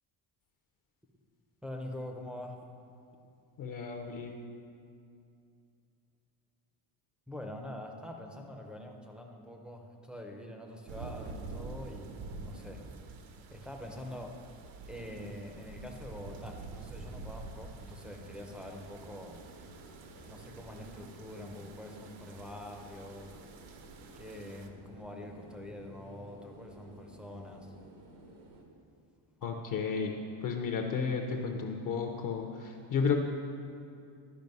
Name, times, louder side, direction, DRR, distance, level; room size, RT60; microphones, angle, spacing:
voice 1, 1.6-2.6 7.3-12.8 13.5-14.4 14.9-19.4 20.2-23.4 24.2-27.7, left 1 dB, ahead, 1 dB, 0.4 m, -45 dB
voice 2, 3.6-4.3 29.4-30.1 30.4-33.2, left 5 dB, 45° left, 3 dB, 0.5 m, -32 dB
sound 1, 10.9-24.7, right 3 dB, 70° right, 0.8 m, -47 dB
sound 2, 18.0-28.6, right 2 dB, 90° right, 1.4 m, -54 dB
11.0 x 5.2 x 5.3 m, 2.6 s
cardioid pair, 170°, 49 cm